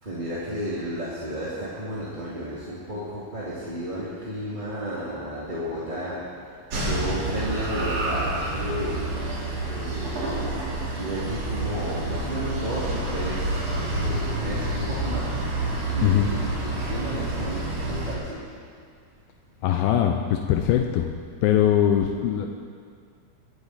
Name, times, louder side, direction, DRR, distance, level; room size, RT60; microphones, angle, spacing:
voice 1, 0.0-18.5, equal, 15° right, -9 dB, 1.8 m, -33 dB
sound 1, 6.7-18.1, right 2 dB, 45° right, 3.6 m, -28 dB
voice 2, 19.6-21.1 21.4-22.5, left 10 dB, 85° left, 4 dB, 2.6 m, -21 dB
23.0 x 11.0 x 4.2 m, 2.1 s
omnidirectional pair, 4.2 m